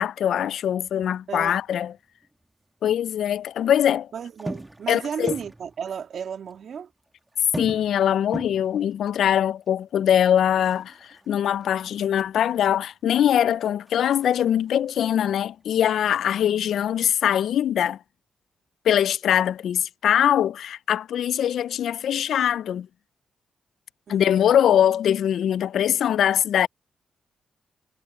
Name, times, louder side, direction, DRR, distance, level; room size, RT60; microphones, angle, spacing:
voice 1, 0.0-1.9 2.8-4.1 4.9-5.3 7.6-18.0 18.8-22.9 24.1-26.7, left 10 dB, 80° left, 0.3 m, -22 dB
sound 1, 0.9-2.5 2.8-3.7 4.2-6.2 6.5-6.6 6.8-12.7 13.1-15.7 15.9-16.5, right 2 dB, 15° right, 2.2 m, -41 dB
voice 2, 4.1-6.9 16.3-16.6 24.1-24.6, right 7 dB, 70° right, 2.4 m, -34 dB
cardioid pair, 80°, 0 cm